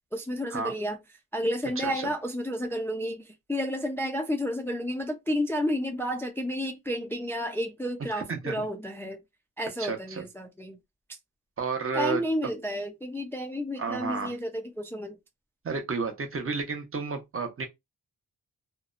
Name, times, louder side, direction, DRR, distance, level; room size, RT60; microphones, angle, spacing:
voice 1, 0.1-1.0 1.3-9.2 9.6-10.8 11.9-15.2, equal, 5° left, 0.3 m, -31 dB
voice 2, 1.8-2.1 8.1-8.7 9.8-10.3 11.6-12.2 13.8-14.3 15.6-17.7, right 4 dB, 35° right, 0.7 m, -31 dB
2.7 x 2.1 x 2.3 m
wide cardioid pair, 100°, 37 cm